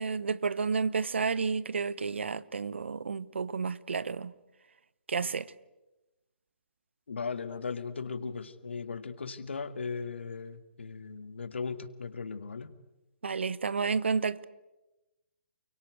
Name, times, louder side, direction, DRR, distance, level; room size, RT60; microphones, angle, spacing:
voice 1, 0.0-4.3 5.1-5.5 13.2-14.4, right 5 dB, 80° right, 1.1 m, -31 dB
voice 2, 7.1-12.7, left 5 dB, 80° left, 2.0 m, -37 dB
29.5 x 23.5 x 8.2 m
hypercardioid pair, 135°, 6 cm